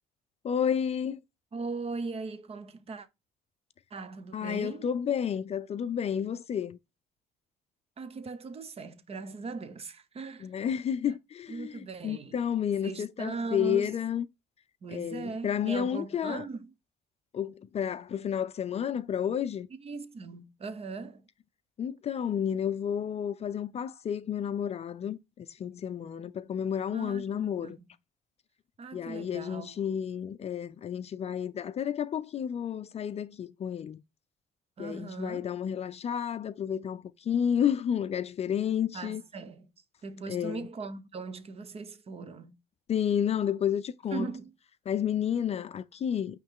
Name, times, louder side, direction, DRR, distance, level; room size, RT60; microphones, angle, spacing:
voice 1, 0.4-1.2 4.3-6.8 10.4-14.2 14.9-16.4 17.3-19.7 21.8-27.8 28.9-34.0 34.8-39.2 40.3-40.7 42.9-44.3 44.9-46.4, left 8 dB, 40° left, 0.5 m, -31 dB
voice 2, 1.5-3.1 3.9-4.9 8.0-10.5 11.1-11.2 11.5-12.3 12.8-14.0 14.8-16.7 19.7-21.3 26.9-27.9 28.8-29.8 34.8-35.5 38.9-39.7 40.0-42.6 44.1-44.5, right 4 dB, 35° right, 0.9 m, -39 dB
8.9 x 3.2 x 3.7 m
cardioid pair, 110°, 17 cm